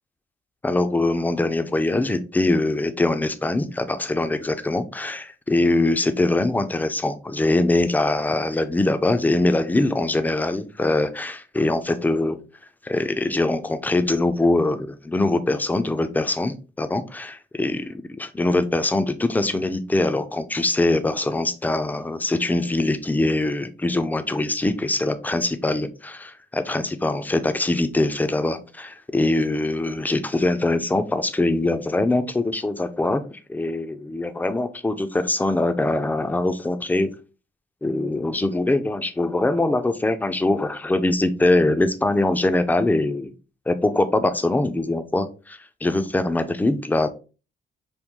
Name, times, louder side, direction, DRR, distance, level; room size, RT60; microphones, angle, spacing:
voice 1, 0.6-12.4 12.8-37.1 37.8-43.3 43.7-47.1, left 2 dB, 10° left, 10 dB, 0.3 m, -23 dB
3.5 x 2.2 x 2.9 m, 0.33 s
cardioid pair, 115°, 21 cm